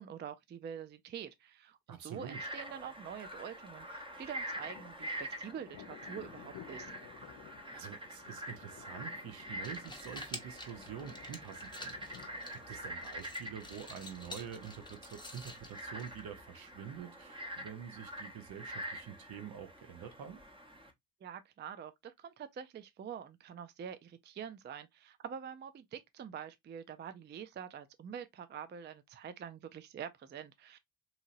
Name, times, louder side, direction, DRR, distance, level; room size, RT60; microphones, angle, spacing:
voice 1, 0.0-6.9 21.2-30.8, right 8 dB, 30° right, 0.4 m, -46 dB
voice 2, 1.9-2.4 7.7-20.4, right 8 dB, 60° right, 0.8 m, -47 dB
Frog, 2.2-20.9, right 1 dB, 15° right, 0.8 m, -46 dB
Thunder, 4.1-13.6, left 11 dB, 60° left, 0.6 m, -56 dB
sound 1, 9.5-16.5, left 2 dB, 10° left, 0.9 m, -50 dB
2.8 x 2.7 x 2.5 m
hypercardioid pair, 50°, 40 cm